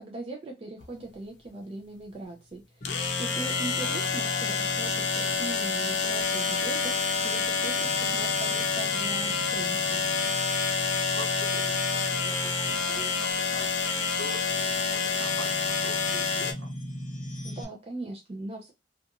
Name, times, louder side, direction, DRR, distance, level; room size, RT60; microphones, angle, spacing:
voice 1, 0.0-2.9 3.2-7.0 7.2-10.1 17.4-18.7, right 2 dB, 30° right, 0 dB, 0.4 m, -39 dB
sound 1, 0.8-0.9 2.8-16.5, left 5 dB, 80° left, 0.6 m, -28 dB
sound 2, 2.8-17.6, equal, 45° left, 0.7 m, -40 dB
voice 2, 3.8-4.1 11.1-13.9 14.1-16.7, equal, 65° right, 2 dB, 0.9 m, -44 dB
2.5 x 2.3 x 2.8 m, 0.24 s
head